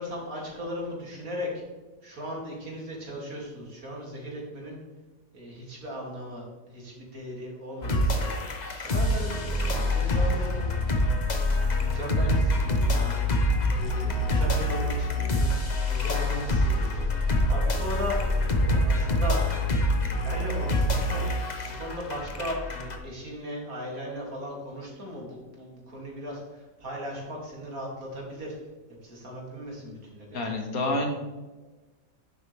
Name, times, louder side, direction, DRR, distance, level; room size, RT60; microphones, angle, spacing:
voice 1, 0.0-1.6 2.0-4.8 5.3-10.7 11.7-13.2 13.7-18.2 18.6-19.4 19.9-28.6 29.0-30.3, equal, 75° right, -3 dB, 3.3 m, -37 dB
sound 1, 7.8-23.0, left 1 dB, 35° left, 1.1 m, -26 dB
voice 2, 30.3-31.1, left 2 dB, 80° left, 2 dB, 2.2 m, -28 dB
10.5 x 7.9 x 3.5 m, 1.2 s
omnidirectional pair, 1.5 m